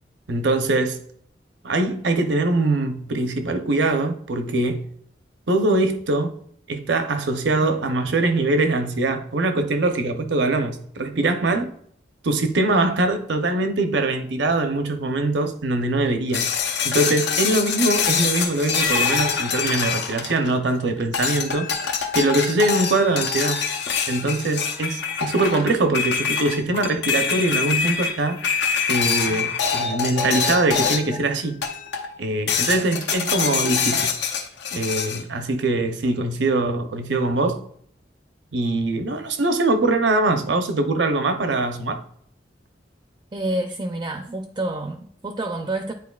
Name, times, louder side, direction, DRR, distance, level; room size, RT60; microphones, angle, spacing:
voice 1, 0.3-1.0 1.6-4.9 5.5-6.3 6.7-11.7 12.2-16.5 16.8-21.7 22.1-23.6 24.1-28.4 28.9-31.6 32.2-34.1 34.7-37.6 38.5-42.0, right 2 dB, 80° right, 0.7 m, -22 dB
sound 1, 16.3-20.7 21.1-31.2 31.6-32.1 32.5-35.2, left 6 dB, 75° left, 0.7 m, -25 dB
voice 2, 43.3-45.9, right 1 dB, 25° right, 0.4 m, -28 dB
9.5 x 4.3 x 2.3 m
head